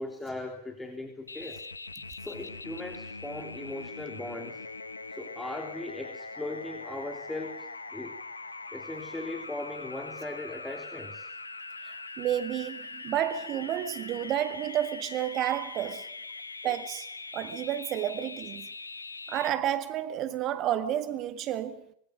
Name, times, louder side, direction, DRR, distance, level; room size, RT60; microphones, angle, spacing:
voice 1, 0.0-1.6 2.2-4.6 5.1-8.2 8.7-11.3 15.8-15.9 16.6-16.7, left 2 dB, 10° left, 3.5 m, -39 dB
sound 1, 1.3-19.5, left 3 dB, 80° left, 1.1 m, -42 dB
voice 2, 11.8-16.1 16.6-17.1 17.3-18.7 19.3-21.9, right 11 dB, 35° right, 1.6 m, -31 dB
25.5 x 21.0 x 6.2 m
figure-of-eight pair, 90°, 0 cm